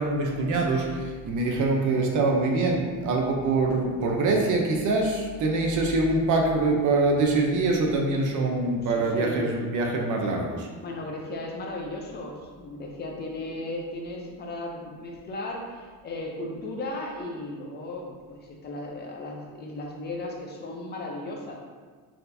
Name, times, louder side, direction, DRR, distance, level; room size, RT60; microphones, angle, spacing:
voice 1, 0.0-10.7, right 3 dB, 45° right, 1 dB, 0.7 m, -24 dB
voice 2, 8.8-9.5 10.8-21.7, left 2 dB, 25° left, 0 dB, 0.5 m, -36 dB
4.4 x 4.0 x 2.6 m, 1.5 s
cardioid pair, 170°, 42 cm